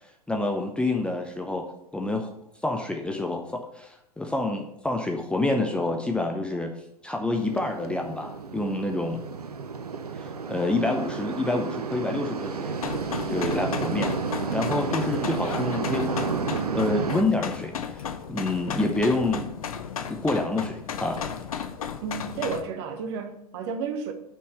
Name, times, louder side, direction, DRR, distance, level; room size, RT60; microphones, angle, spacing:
voice 1, 0.3-1.7 1.9-2.3 2.6-6.7 7.0-9.2 10.2-12.8 13.2-14.1 14.5-16.1 16.7-18.0 18.3-19.5 20.1-21.2, left 2 dB, 5° left, 0.7 m, -27 dB
sound 1, 7.3-17.2, right 5 dB, 75° right, 0.7 m, -31 dB
sound 2, 12.8-22.6, left 7 dB, 65° left, 0.7 m, -34 dB
voice 2, 22.0-24.1, right 5 dB, 45° right, 1.2 m, -32 dB
6.3 x 5.5 x 6.8 m
figure-of-eight pair, 95°, 20 cm